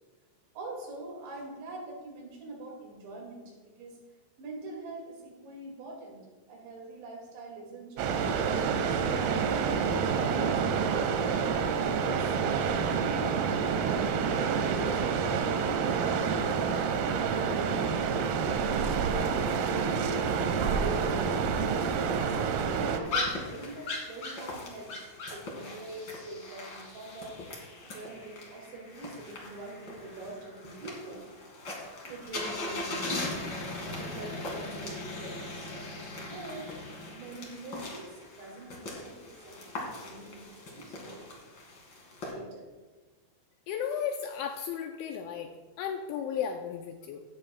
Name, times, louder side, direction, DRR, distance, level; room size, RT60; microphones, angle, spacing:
voice 1, 0.5-4.0 4.4-6.2 6.5-9.3 9.7-11.3 11.8-15.6 16.1-20.0 20.6-22.3 22.9-27.5 27.8-31.3 32.0-36.7 37.1-41.3 42.3-42.7, right 2 dB, 65° right, -1 dB, 4.4 m, -44 dB
sound 1, 8.0-23.0, right 6 dB, 90° right, 3.6 m, -28 dB
sound 2, 23.0-42.3, left 2 dB, 50° left, 1.3 m, -39 dB
voice 2, 43.7-45.5 45.8-47.2, left 8 dB, 85° left, 3 dB, 2.8 m, -34 dB
16.5 x 11.0 x 2.4 m, 1.3 s
omnidirectional pair, 5.9 m